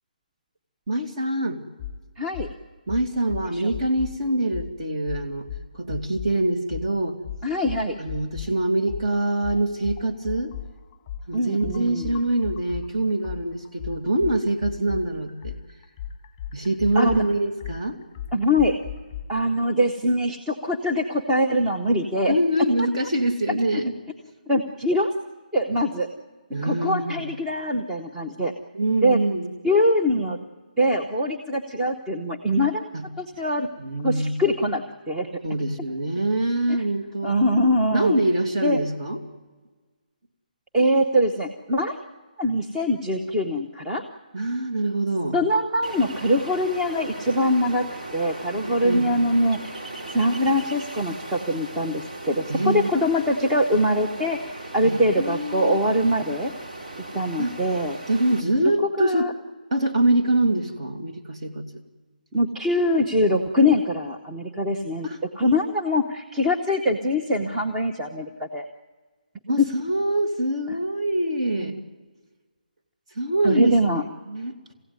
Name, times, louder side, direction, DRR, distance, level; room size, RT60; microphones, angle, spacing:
voice 1, 0.9-1.6 2.9-5.5 5.7-7.2 8.0-10.5 11.3-15.6 16.5-18.0 22.3-23.9 26.5-27.3 28.7-29.5 32.9-33.1 33.8-34.3 35.4-37.3 37.9-39.2 44.3-45.4 48.6-49.1 52.5-52.9 54.8-55.8 57.4-57.5 58.1-59.3 59.7-61.7 65.0-65.2 69.5-71.8 73.1-74.5, right 1 dB, 40° right, 3 dB, 2.4 m, -24 dB
sound 1, 1.8-2.0 2.3-2.5 2.9-4.2 4.5-4.7 5.1-6.3 6.7-6.9 7.2-8.5 8.9-12.9 13.2-19.2, left 10 dB, 15° left, 1.6 m, -35 dB
voice 2, 2.2-2.5 3.5-3.6 7.4-8.0 11.3-12.1 16.9-17.2 18.3-18.8 19.3-22.3 24.5-25.1 25.5-26.1 26.6-28.5 29.0-29.2 29.6-30.4 30.8-32.9 33.2-33.7 34.0-35.3 37.2-38.2 38.6-38.8 40.7-42.0 42.4-44.0 45.3-47.9 48.1-49.6 50.1-56.5 57.1-58.0 59.0-59.3 62.3-65.1 65.4-68.6 70.7-70.8 71.6-71.7 73.4-74.0, equal, 10° right, 1 dB, 0.8 m, -23 dB
Ocean, 45.8-58.4, right 2 dB, 60° right, 3.1 m, -38 dB
22.5 x 16.0 x 9.6 m, 1.4 s
hypercardioid pair, 165°, 5 cm